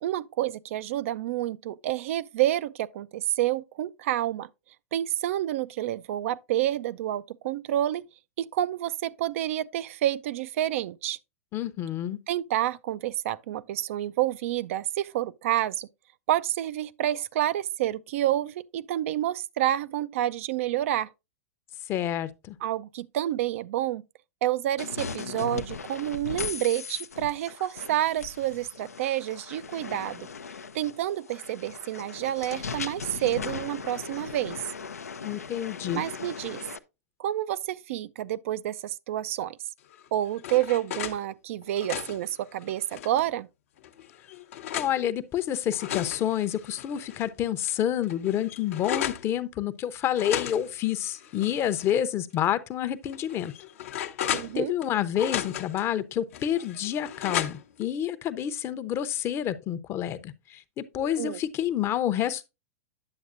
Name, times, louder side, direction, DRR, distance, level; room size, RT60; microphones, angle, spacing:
voice 1, 0.0-4.5 4.9-8.1 8.4-11.2 12.3-15.9 16.3-21.1 22.6-24.0 24.4-30.3 30.7-34.6 35.9-36.6 37.2-39.6 40.1-43.5 54.3-54.7 61.2-61.4, right 13 dB, 60° right, 0.4 m, -29 dB
voice 2, 11.5-12.2 21.9-22.6 35.2-36.0 44.7-53.5 54.5-62.5, left 10 dB, 35° left, 0.7 m, -28 dB
sound 1, 24.8-36.8, left 5 dB, 90° left, 0.5 m, -38 dB
sound 2, 39.9-41.2 41.6-43.3 43.8-45.0 45.5-47.3 47.6-47.7 48.0-49.3 50.1-52.0 52.3-52.4 53.1-54.9 55.2-55.8 56.3-57.8, left 10 dB, 65° left, 0.8 m, -35 dB
9.7 x 7.0 x 2.5 m
hypercardioid pair, 105°, 8 cm